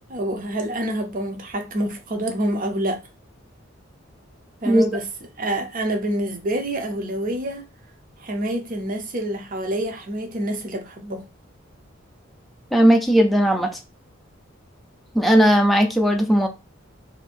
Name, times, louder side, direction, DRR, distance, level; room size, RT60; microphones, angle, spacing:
voice 1, 0.1-3.0 4.6-5.0 5.4-7.6 8.2-11.2, right 1 dB, 45° right, 0.7 m, -27 dB
voice 2, 12.7-13.7 15.1-16.5, equal, ahead, 0.5 m, -17 dB
2.7 x 2.7 x 4.3 m
head